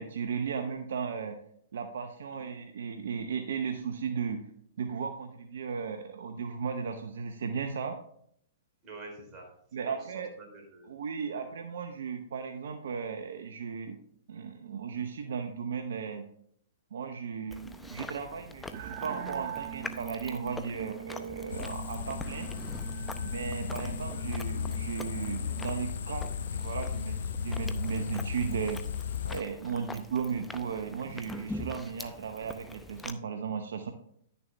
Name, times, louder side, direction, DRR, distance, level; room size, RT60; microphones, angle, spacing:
voice 1, 0.0-1.4 1.7-4.4 4.8-8.0 9.7-10.3 10.9-14.0 14.3-16.2 16.9-22.5 23.2-28.8 29.3-33.9, right 6 dB, 70° right, 6 dB, 0.8 m, -36 dB
voice 2, 8.8-9.5 9.8-10.9 11.3-11.4 23.6-24.0 29.7-29.9, right 2 dB, 30° right, 0 dB, 3.5 m, -48 dB
Chewing mastication, 17.5-33.1, left 2 dB, 10° left, 0.6 m, -45 dB
sound 1, 18.7-25.4, right 10 dB, 50° right, 0.9 m, -43 dB
sound 2, 21.5-29.4, left 6 dB, 75° left, 0.4 m, -35 dB
10.5 x 6.9 x 3.4 m, 0.68 s
hypercardioid pair, 115°, 0 cm